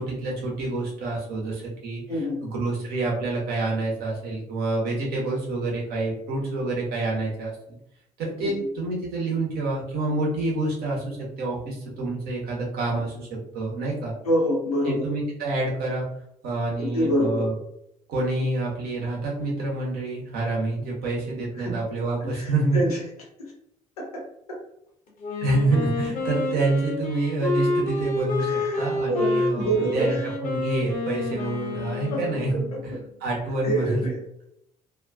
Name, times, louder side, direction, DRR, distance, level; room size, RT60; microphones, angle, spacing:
voice 1, 0.0-2.0 2.4-7.8 8.2-13.3 13.5-14.1 14.8-16.1 16.4-17.5 18.1-22.8 25.4-30.1 30.4-32.9 33.2-34.0, right 2 dB, 55° right, -3 dB, 1.0 m, -27 dB
voice 2, 2.1-2.4 8.4-8.5 14.2-15.0 16.8-17.4 21.5-21.7 22.2-23.0 23.4-23.5 24.0-24.2 28.4-30.2 32.1-32.2 32.5-33.0 33.6-34.4, right 1 dB, 80° left, -3 dB, 0.8 m, -27 dB
Wind instrument woodwind instrument, 25.2-33.0, left 2 dB, 45° left, 0.8 m, -29 dB
2.6 x 2.3 x 2.4 m, 0.77 s
figure-of-eight pair, 50°, 19 cm